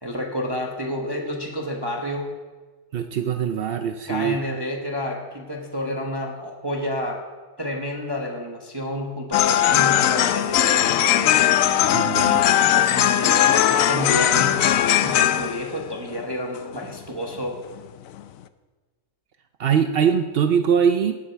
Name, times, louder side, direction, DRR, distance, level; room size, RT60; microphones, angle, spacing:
voice 1, 0.0-2.3 4.1-7.2 7.6-11.5 12.6-17.6, left 1 dB, 15° right, 0 dB, 1.1 m, -30 dB
voice 2, 2.9-4.4 11.9-12.4 19.6-21.1, right 7 dB, 75° right, 7 dB, 0.5 m, -22 dB
sound 1, 9.3-15.8 16.1-16.2 16.6-17.0 17.4-17.5 17.8-17.9 18.2-18.3, left 11 dB, 70° left, 0.9 m, -19 dB
18.5 x 7.3 x 4.6 m, 1.3 s
omnidirectional pair, 1.7 m